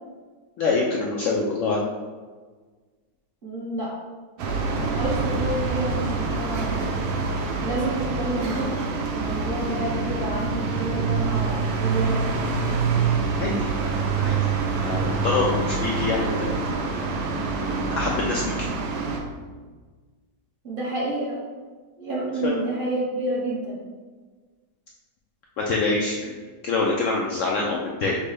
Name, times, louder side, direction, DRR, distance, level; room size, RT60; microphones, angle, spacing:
voice 1, 0.6-1.8 13.4-14.3 14.7-16.8 17.6-18.5 22.4-22.5 25.6-26.3 26.6-28.1, left 3 dB, 90° left, -2 dB, 0.6 m, -25 dB
voice 2, 3.4-4.0 4.8-6.9 7.6-12.8 20.6-21.4 22.0-23.8, right 1 dB, 35° right, -7 dB, 1.1 m, -29 dB
sound 1, 4.4-19.2, right 4 dB, 75° right, 1.2 m, -26 dB
6.5 x 2.2 x 3.2 m, 1.4 s
omnidirectional pair, 1.9 m